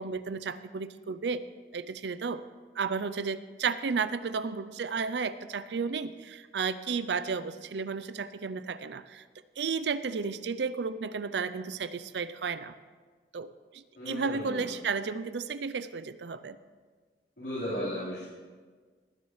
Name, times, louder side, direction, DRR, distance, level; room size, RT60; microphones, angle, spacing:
voice 1, 0.0-1.4 1.7-2.4 2.8-9.2 9.6-12.7 13.3-16.6, right 5 dB, 80° right, 14 dB, 0.5 m, -33 dB
voice 2, 14.0-14.6 17.4-18.2, equal, 80° left, -11 dB, 4.2 m, -35 dB
19.0 x 10.5 x 3.2 m, 1.5 s
head